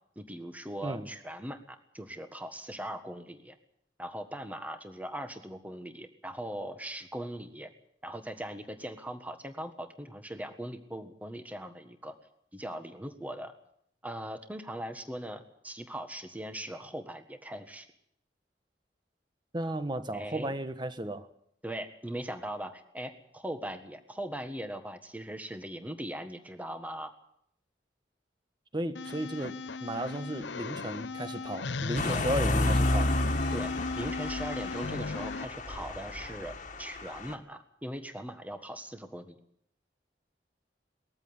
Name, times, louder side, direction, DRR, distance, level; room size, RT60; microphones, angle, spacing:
voice 1, 0.1-3.6 4.0-7.7 8.0-12.1 12.5-13.5 14.0-17.9 20.1-20.6 21.6-27.1 32.0-32.2 33.5-39.3, right 1 dB, 10° right, 7 dB, 1.5 m, -40 dB
voice 2, 19.5-21.3 28.7-33.1, right 1 dB, 25° right, 10 dB, 1.4 m, -34 dB
sound 1, 28.9-35.4, left 3 dB, 85° left, 0.8 m, -36 dB
sound 2, 32.0-37.3, left 1 dB, 45° left, 1.9 m, -31 dB
20.0 x 14.5 x 9.7 m, 0.71 s
head